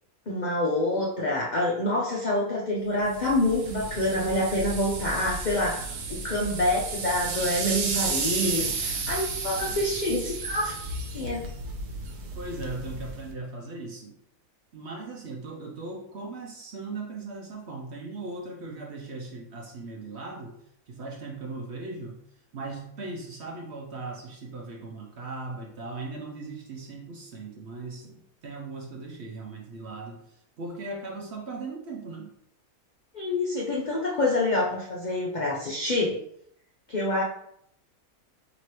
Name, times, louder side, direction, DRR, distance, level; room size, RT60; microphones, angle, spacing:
voice 1, 0.3-10.7 11.1-11.5 33.1-36.2 36.9-37.2, left 1 dB, 75° left, -3 dB, 0.4 m, -27 dB
sound 1, 3.1-13.3, right 3 dB, 85° right, 1.2 m, -33 dB
voice 2, 8.6-9.2 9.5-9.8 12.3-14.2 14.7-20.6 20.9-22.2 22.5-32.3, right 3 dB, 60° right, 0 dB, 0.8 m, -38 dB
4.7 x 3.0 x 2.9 m, 0.72 s
omnidirectional pair, 1.6 m